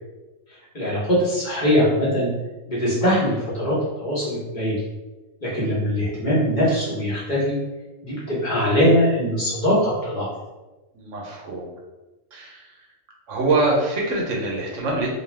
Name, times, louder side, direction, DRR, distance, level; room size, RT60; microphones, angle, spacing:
voice 1, 0.7-2.3 2.7-4.8 5.4-7.6 8.0-10.3, equal, 40° left, -8 dB, 1.0 m, -21 dB
voice 2, 10.9-11.7 12.3-12.6 13.3-15.1, right 2 dB, 75° right, -1 dB, 1.0 m, -24 dB
2.6 x 2.2 x 3.2 m, 1.1 s
omnidirectional pair, 1.3 m